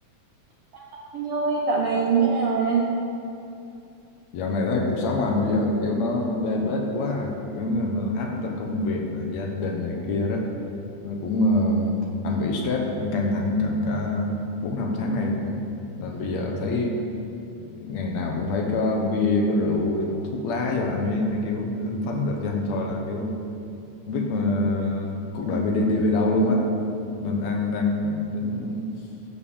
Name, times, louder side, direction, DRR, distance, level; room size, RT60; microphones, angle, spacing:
voice 1, 0.7-2.9, right 5 dB, 70° right, -2 dB, 1.4 m, -23 dB
voice 2, 4.3-10.5 11.0-15.6 16.0-17.0 17.6-23.4 24.1-26.7 27.2-28.9, left 2 dB, 70° left, 1 dB, 2.1 m, -25 dB
12.0 x 5.4 x 7.0 m, 2.6 s
omnidirectional pair, 3.5 m